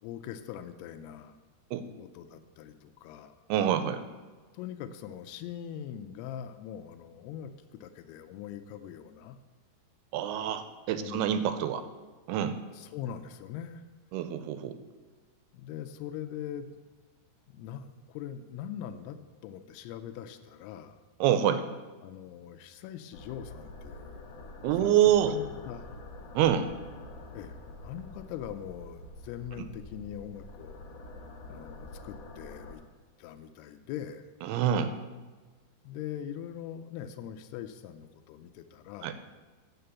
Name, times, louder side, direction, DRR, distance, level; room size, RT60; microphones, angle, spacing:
voice 1, 0.0-1.4 2.0-3.3 4.5-9.4 10.9-11.7 12.8-13.8 15.5-16.7 17.5-19.2 19.4-21.0 22.0-24.2 24.8-24.9 25.3-26.0 27.3-27.6 27.8-30.8 31.5-32.8 33.2-34.2 35.8-39.2, left 10 dB, 90° left, 8 dB, 2.6 m, -42 dB
voice 2, 3.5-4.0 10.1-11.8 12.3-12.6 14.1-14.8 21.2-21.7 24.6-25.4 26.4-26.7 29.6-29.7 34.4-34.9 39.0-39.2, right 10 dB, 85° right, 10 dB, 2.5 m, -26 dB
sound 1, 23.1-32.7, left 2 dB, 60° left, 1.9 m, -46 dB
7.9 x 5.9 x 6.8 m, 1.4 s
omnidirectional pair, 4.6 m